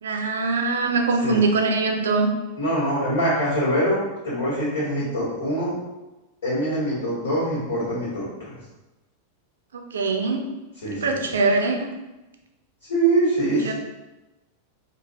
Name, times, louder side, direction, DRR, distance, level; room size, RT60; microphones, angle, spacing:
voice 1, 0.0-2.3 9.7-10.4 11.0-11.9 13.6-13.7, right 3 dB, 65° right, 3 dB, 0.4 m, -22 dB
voice 2, 2.6-4.0 4.2-5.8 6.4-8.6 10.8-11.1 12.9-13.7, right 1 dB, 60° left, -11 dB, 1.5 m, -24 dB
3.1 x 2.4 x 2.6 m, 1.1 s
figure-of-eight pair, 90°, 0 cm